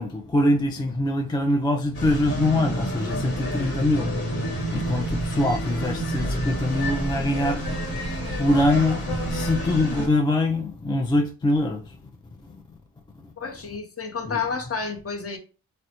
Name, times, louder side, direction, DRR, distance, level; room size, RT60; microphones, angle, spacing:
voice 1, 0.0-8.0 8.4-12.1 12.4-12.5 14.3-14.4, left 1 dB, 15° left, 0.3 m, -24 dB
sound 1, 1.9-10.1, equal, 85° left, 1.1 m, -28 dB
voice 2, 13.4-15.4, left 5 dB, 40° left, 0.8 m, -30 dB
3.0 x 2.1 x 2.8 m
cardioid pair, 45°, 36 cm